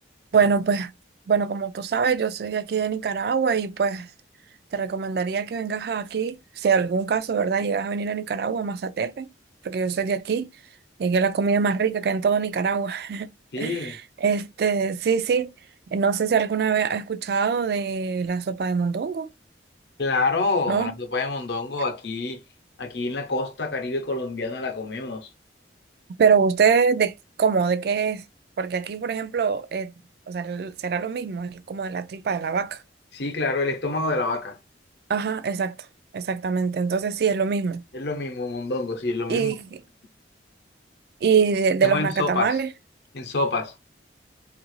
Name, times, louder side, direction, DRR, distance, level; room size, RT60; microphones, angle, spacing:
voice 1, 0.3-0.9 1.3-4.1 4.7-9.3 9.6-10.5 11.0-13.3 13.6-15.5 15.9-19.3 20.7-20.9 26.2-28.2 28.6-29.9 30.3-32.8 35.1-35.7 36.1-37.8 39.3-39.8 41.2-42.7, right 6 dB, 55° right, 0.3 m, -24 dB
voice 2, 13.5-14.0 20.0-22.4 22.8-25.3 33.1-34.6 37.9-39.5 41.8-42.6 43.1-43.7, left 3 dB, 65° left, 0.7 m, -27 dB
2.8 x 2.5 x 3.0 m
head